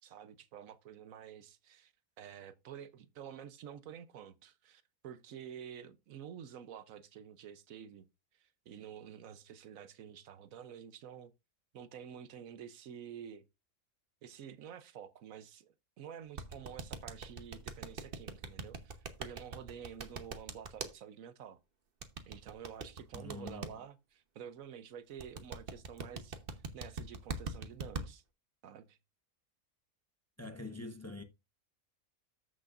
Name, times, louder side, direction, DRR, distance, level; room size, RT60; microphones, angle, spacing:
voice 1, 0.0-1.9 2.2-8.1 8.4-11.3 11.7-13.4 14.2-21.6 22.3-26.4 26.7-28.2 28.6-29.0, right 8 dB, 75° right, 1.1 m, -49 dB
sound 1, 16.4-20.9 22.0-23.7 25.2-28.0, right 4 dB, 45° right, 1.1 m, -41 dB
voice 2, 23.1-23.8 30.4-31.2, left 2 dB, 15° left, 0.7 m, -45 dB
14.0 x 6.3 x 2.5 m
omnidirectional pair, 1.5 m